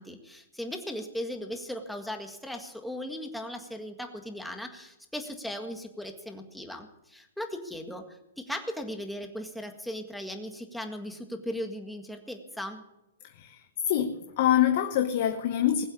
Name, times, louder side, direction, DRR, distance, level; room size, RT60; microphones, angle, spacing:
voice 1, 0.0-12.8, equal, ahead, 4 dB, 1.8 m, -38 dB
voice 2, 13.2-15.8, left 11 dB, 45° left, 6 dB, 1.2 m, -25 dB
20.0 x 8.0 x 8.6 m, 0.92 s
hypercardioid pair, 150°, 0 cm